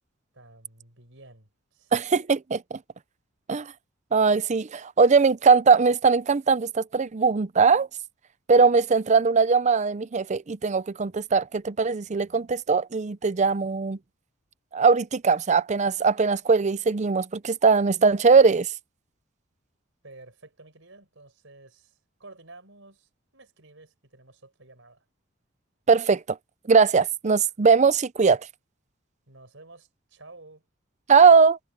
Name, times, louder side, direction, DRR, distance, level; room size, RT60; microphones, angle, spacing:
voice 1, 0.3-2.0 20.0-25.0 29.3-30.6, right 2 dB, 65° right, 6.6 m, -51 dB
voice 2, 1.9-2.8 3.5-3.7 4.1-7.9 8.5-14.0 14.7-18.7 25.9-26.4 26.7-28.4 31.1-31.6, right 5 dB, 35° right, 0.5 m, -20 dB
head